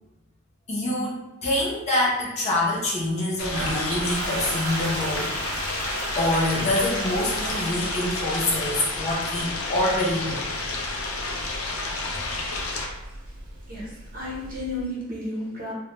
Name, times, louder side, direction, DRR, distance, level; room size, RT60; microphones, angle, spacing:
voice 1, 0.7-5.7 6.2-10.4, left 1 dB, 30° left, -4 dB, 0.5 m, -26 dB
sound 1, 3.4-12.9, left 3 dB, 85° left, 0.4 m, -31 dB
Toilet flush, 3.4-14.8, right 2 dB, 85° right, 0.4 m, -36 dB
voice 2, 13.0-15.7, left 1 dB, 45° right, -5 dB, 0.8 m, -34 dB
2.1 x 2.1 x 2.9 m, 0.97 s
head